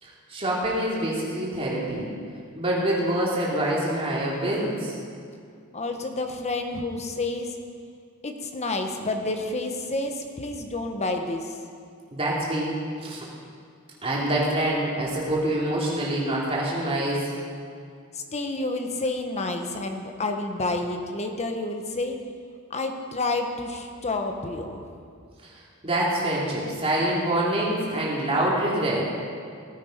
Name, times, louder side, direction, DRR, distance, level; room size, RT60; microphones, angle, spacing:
voice 1, 0.0-2.1 2.5-5.0 12.1-13.3 14.0-17.3 25.8-29.1, right 1 dB, 30° right, -5 dB, 3.1 m, -26 dB
voice 2, 5.7-7.6 8.2-11.6 18.1-22.2 22.7-24.9, left 2 dB, 30° left, 5 dB, 1.1 m, -29 dB
17.5 x 9.1 x 5.2 m, 2.2 s
head